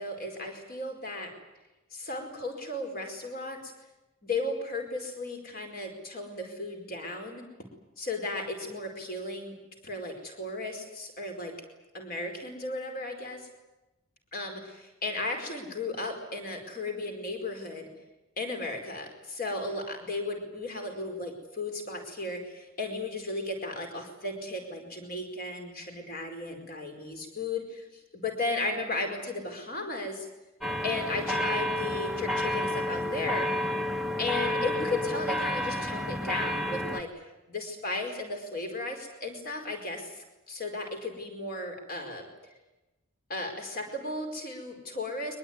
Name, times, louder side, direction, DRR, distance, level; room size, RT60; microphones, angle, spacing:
voice 1, 0.0-1.3 1.9-3.7 4.2-7.4 8.0-9.6 9.8-11.6 11.9-13.5 14.3-17.9 18.4-27.9 28.1-30.3 30.8-33.5 34.2-40.1 40.5-42.5 43.3-45.4, left 2 dB, 40° left, 4 dB, 4.8 m, -35 dB
sound 1, 30.6-37.0, left 1 dB, ahead, 1.0 m, -30 dB
23.5 x 21.5 x 9.6 m, 1.0 s
head